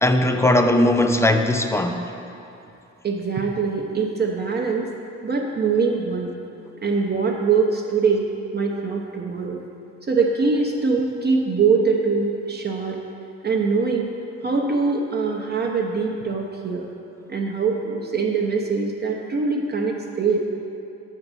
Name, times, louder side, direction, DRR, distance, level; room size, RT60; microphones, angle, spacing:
voice 1, 0.0-2.1, left 1 dB, 10° left, 6 dB, 0.4 m, -19 dB
voice 2, 3.0-4.9 5.2-6.4 6.8-9.6 10.1-13.0 13.4-14.1 14.4-16.9 17.3-20.5, right 4 dB, 35° right, 0 dB, 0.7 m, -23 dB
7.1 x 4.6 x 5.3 m, 2.7 s
cardioid pair, 90°, 30 cm